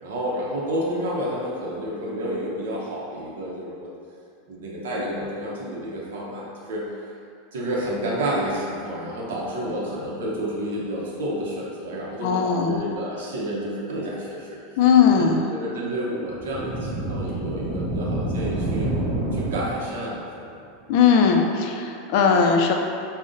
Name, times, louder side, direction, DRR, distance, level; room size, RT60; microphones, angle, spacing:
voice 1, 0.0-3.9 4.5-6.9 7.5-14.8 15.2-18.9 19.3-20.6, equal, 90° right, -5 dB, 0.6 m, -30 dB
voice 2, 12.2-12.8 14.8-15.4 20.9-22.7, left 6 dB, 55° left, 3 dB, 0.3 m, -18 dB
sound 1, 16.3-20.1, right 2 dB, 35° right, 0.7 m, -28 dB
5.1 x 2.0 x 2.5 m, 2.4 s
supercardioid pair, 145°, 0 cm